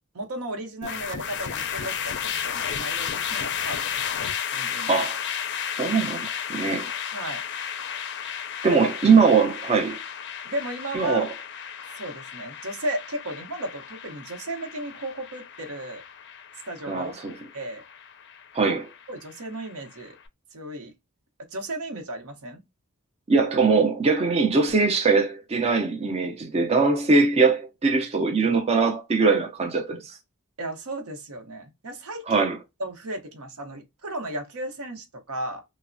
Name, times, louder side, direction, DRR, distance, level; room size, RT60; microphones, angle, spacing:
voice 1, 0.1-4.0 4.5-5.0 7.1-7.4 8.7-8.9 10.4-11.3 11.9-16.0 16.6-17.1 17.5-17.8 18.7-18.8 19.1-20.2 20.5-20.9 21.5-22.6 30.6-32.5 32.8-35.6, right 1 dB, 80° right, 0.8 m, -34 dB
sound 1, 0.8-20.1, left 8 dB, 50° left, 0.4 m, -33 dB
voice 2, 5.8-6.9 8.6-10.0 10.9-11.3 16.9-17.3 18.5-18.9 23.3-30.2 32.3-32.6, right 4 dB, 30° right, 0.4 m, -21 dB
3.1 x 2.0 x 2.5 m
head